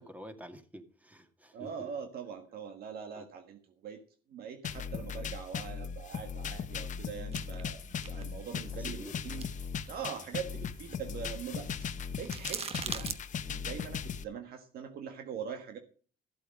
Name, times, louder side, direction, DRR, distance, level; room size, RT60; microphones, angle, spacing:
voice 1, 0.0-1.9 3.1-3.3 8.7-9.1, right 1 dB, 10° right, 7 dB, 2.1 m, -48 dB
voice 2, 1.5-4.0 4.3-7.8 8.1-9.5 9.9-11.9 12.2-15.8, right 7 dB, 65° right, 6 dB, 1.7 m, -42 dB
sound 1, 4.6-14.2, left 7 dB, 45° left, 1.0 m, -38 dB
sound 2, 7.3-13.2, right 6 dB, 35° right, 1.1 m, -44 dB
14.0 x 8.1 x 5.2 m, 0.40 s
cardioid pair, 110°, 17 cm